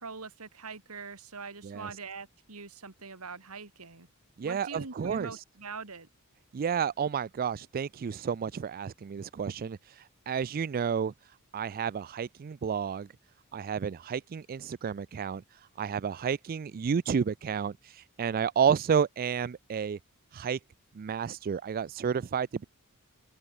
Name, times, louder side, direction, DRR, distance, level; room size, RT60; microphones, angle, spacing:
voice 1, 0.0-4.1 4.4-6.1, right 4 dB, 75° right, 2.4 m, -43 dB
voice 2, 4.4-5.4 6.5-13.1 13.5-20.0 20.3-20.6 20.9-22.6, right 7 dB, 40° right, 0.4 m, -31 dB
head